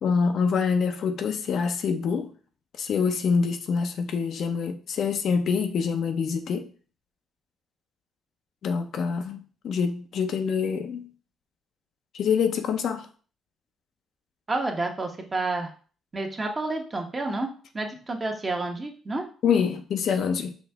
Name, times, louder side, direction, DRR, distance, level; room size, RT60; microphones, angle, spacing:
voice 1, 0.0-2.3 2.8-6.7 8.6-11.1 12.1-13.1 19.4-20.5, left 6 dB, 65° left, 6 dB, 0.6 m, -26 dB
voice 2, 14.5-15.7 16.1-17.5 17.7-19.2, right 2 dB, 30° right, 2 dB, 1.1 m, -29 dB
5.1 x 2.6 x 3.4 m, 0.40 s
supercardioid pair, 65°, 0 cm